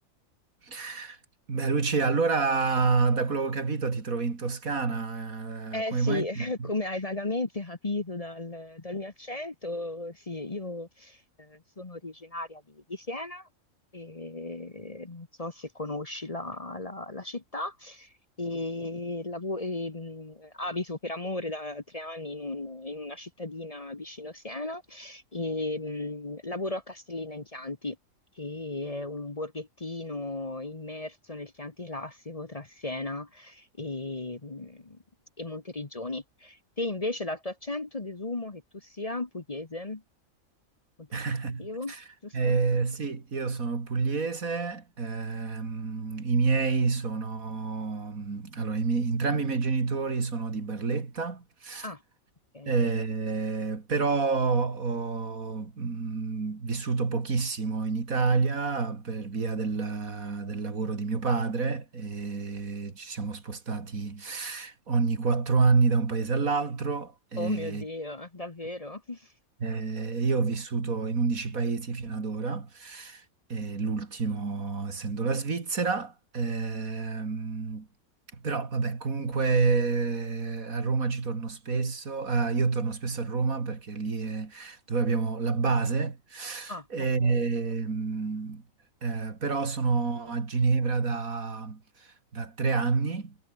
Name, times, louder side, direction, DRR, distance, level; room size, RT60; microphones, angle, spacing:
voice 1, 0.6-1.2 1.5-6.7 41.1-42.0 42.3-51.9 52.6-67.8 69.6-73.2 73.5-77.9 78.3-88.6 89.0-93.4, right 4 dB, 75° right, 3.1 m, -28 dB
voice 2, 5.7-13.5 13.9-28.0 28.3-35.0 35.4-40.0 41.0-41.2 41.6-41.9 42.2-42.6 51.8-52.0 52.5-52.7 67.4-69.3 86.7-86.9 87.2-87.4, left 2 dB, 25° left, 1.3 m, -35 dB
omnidirectional pair, 1.5 m